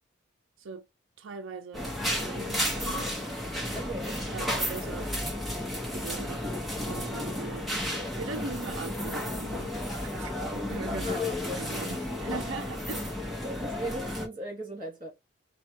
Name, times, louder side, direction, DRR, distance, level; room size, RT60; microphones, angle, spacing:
voice 1, 1.2-3.1 4.3-5.3 5.9-6.4 6.8-9.7 10.0-11.2 11.6-13.1, right 4 dB, 80° right, 0.5 m, -40 dB
sound 1, 1.7-14.3, left 1 dB, ahead, 0.8 m, -33 dB
voice 2, 3.7-4.2 11.0-11.6 13.4-15.1, right 1 dB, 30° right, 2.5 m, -37 dB
4.2 x 2.3 x 4.4 m
head